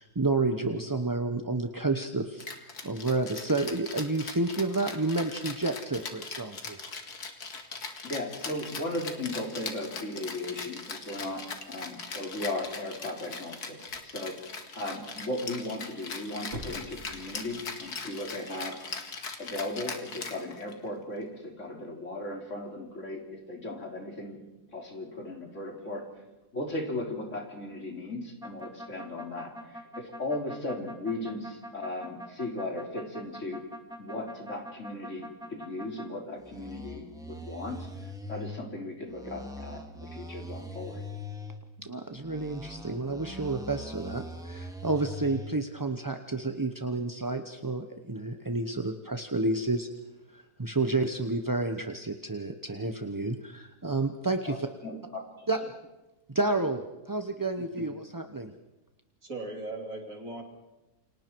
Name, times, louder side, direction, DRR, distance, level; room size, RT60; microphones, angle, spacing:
voice 1, 0.0-6.8 41.8-49.9 50.3-54.7 55.5-55.6 56.3-58.5, right 2 dB, 20° right, 6 dB, 0.6 m, -30 dB
Rattle (instrument), 2.4-20.9, left 4 dB, 75° left, 2.5 m, -40 dB
voice 2, 8.0-14.5 14.8-18.8 19.4-24.4 24.7-26.0 26.5-33.6 34.0-37.9 38.3-41.0 54.5-54.6 54.8-55.5, left 2 dB, 50° left, 1 dB, 3.9 m, -37 dB
sound 1, 13.2-13.3 13.9-14.0 16.5-17.9 18.3-18.4, equal, 35° right, 3.6 m, -44 dB
sound 2, 28.4-36.1 36.4-38.6 39.1-41.6 42.1-45.5, left 1 dB, ahead, 1.9 m, -42 dB
voice 3, 59.2-60.4, right 2 dB, 55° right, 2 dB, 3.5 m, -38 dB
29.0 x 25.0 x 4.6 m, 1.1 s
omnidirectional pair, 1.7 m